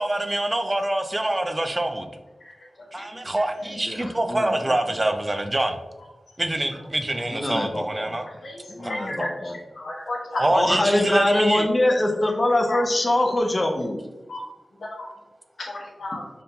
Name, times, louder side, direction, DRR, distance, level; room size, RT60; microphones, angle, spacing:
voice 1, 0.0-2.1 2.9-5.8 6.4-8.3 8.8-9.3 10.3-11.7, right 1 dB, 30° right, 6 dB, 0.4 m, -25 dB
voice 2, 3.9-4.6 4.9-5.0 7.3-8.1 8.7-9.6 10.5-14.0, left 1 dB, 35° left, 2 dB, 0.6 m, -23 dB
voice 3, 8.4-9.1 9.8-10.4 12.7-12.8 14.3-14.4 14.8-15.1 15.7-16.2, left 2 dB, 85° left, -3 dB, 0.8 m, -32 dB
5.2 x 2.7 x 2.2 m, 1.1 s
cardioid pair, 55°, 0 cm